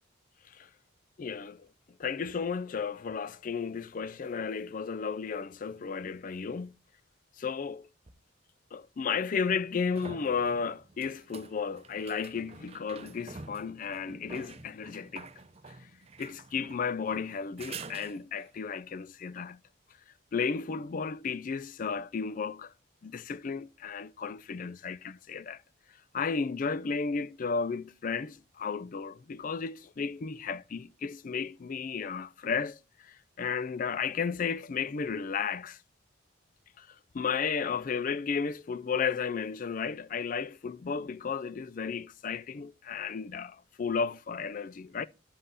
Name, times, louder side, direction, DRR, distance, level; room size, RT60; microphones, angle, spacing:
voice 1, 1.2-1.7 2.0-6.8 7.4-7.9 8.7-15.3 15.7-15.8 16.2-19.6 20.3-22.7 23.0-25.6 26.1-35.8 36.8-45.1, left 5 dB, 40° left, 0.4 m, -33 dB
sound 1, 8.1-8.2 9.4-18.6 22.0-22.1, right 4 dB, 30° right, 0.7 m, -48 dB
11.0 x 5.6 x 4.0 m
head